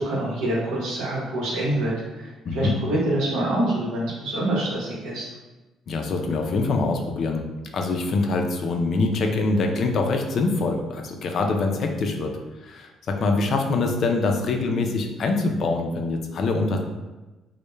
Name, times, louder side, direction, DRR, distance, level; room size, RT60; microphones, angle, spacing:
voice 1, 0.0-5.3, right 1 dB, 80° right, -5 dB, 0.8 m, -26 dB
voice 2, 5.9-7.4 7.7-12.3 12.6-16.8, left 3 dB, 55° left, 3 dB, 0.3 m, -24 dB
2.1 x 2.1 x 3.0 m, 1.1 s
cardioid pair, 90°, 0 cm